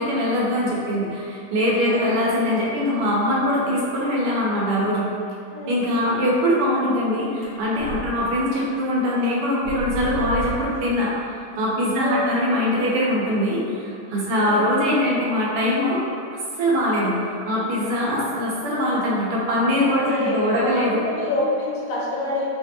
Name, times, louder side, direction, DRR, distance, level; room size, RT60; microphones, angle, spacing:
voice 1, 0.0-5.1 5.7-16.0 16.6-21.0, left 1 dB, 85° right, -5 dB, 1.8 m, -22 dB
voice 2, 1.7-2.2 5.5-5.9 12.0-12.4 14.4-14.7 20.1-22.5, left 2 dB, 55° left, -5 dB, 1.3 m, -27 dB
sound 1, 7.4-8.1 8.5-8.6 9.2-9.3 9.6-10.8, left 1 dB, 55° right, 1.7 m, -31 dB
4.9 x 3.4 x 2.9 m, 2.5 s
omnidirectional pair, 2.4 m